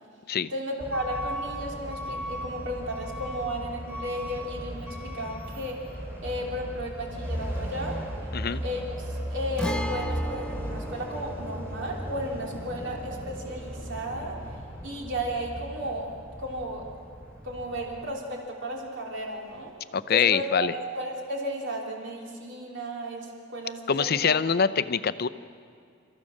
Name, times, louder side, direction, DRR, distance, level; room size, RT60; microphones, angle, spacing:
voice 1, 0.5-8.0 8.6-14.6 14.8-16.1 16.4-16.9 17.4-19.7 20.1-24.4, equal, 60° right, 0 dB, 3.3 m, -34 dB
Truck / Alarm, 0.8-18.0, equal, 10° right, 3.1 m, -36 dB
Guitar, 9.6-17.2 17.5-17.6 19.6-19.7, equal, 5° left, 0.8 m, -39 dB
voice 2, 19.9-20.7 23.9-25.3, left 6 dB, 50° left, 14 dB, 0.6 m, -24 dB
29.5 x 14.5 x 6.5 m, 2.3 s
head